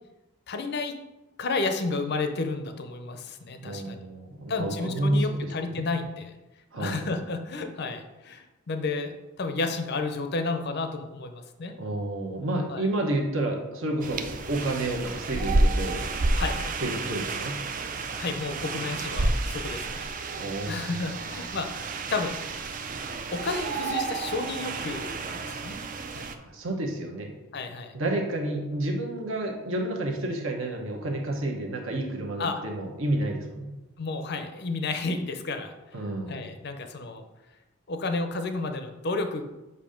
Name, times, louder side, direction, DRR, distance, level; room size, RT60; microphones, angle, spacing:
voice 1, 0.5-0.9 1.4-4.0 4.5-6.3 6.8-11.7 12.7-12.8 16.4-16.7 18.2-20.1 20.7-22.4 23.3-25.8 26.1-26.3 27.5-27.9 32.4-32.6 34.0-35.7 36.3-37.2 37.9-39.4, left 3 dB, 50° left, 7 dB, 0.5 m, -31 dB
voice 2, 3.6-5.8 6.7-7.0 11.8-14.2 14.5-16.0 16.8-17.6 20.4-21.6 26.4-27.3 27.9-33.7 35.9-36.5, right 1 dB, 65° right, 1 dB, 1.0 m, -30 dB
sound 1, 14.0-26.4, right 2 dB, 40° right, 0.4 m, -30 dB
7.1 x 2.7 x 5.0 m, 1.0 s
head